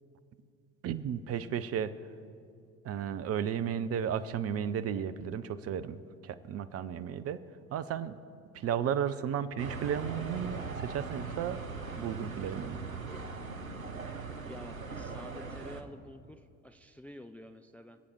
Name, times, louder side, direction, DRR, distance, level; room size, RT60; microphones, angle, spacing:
voice 1, 0.8-1.9 2.8-7.4 7.7-8.2 8.5-11.6 11.9-12.8, right 8 dB, 35° right, 14 dB, 0.8 m, -34 dB
sound 1, 9.6-15.8, right 4 dB, 90° right, 0.9 m, -40 dB
voice 2, 14.5-18.0, left 1 dB, 5° left, 8 dB, 0.5 m, -49 dB
26.0 x 8.8 x 4.6 m, 2.3 s
figure-of-eight pair, 60°, 40 cm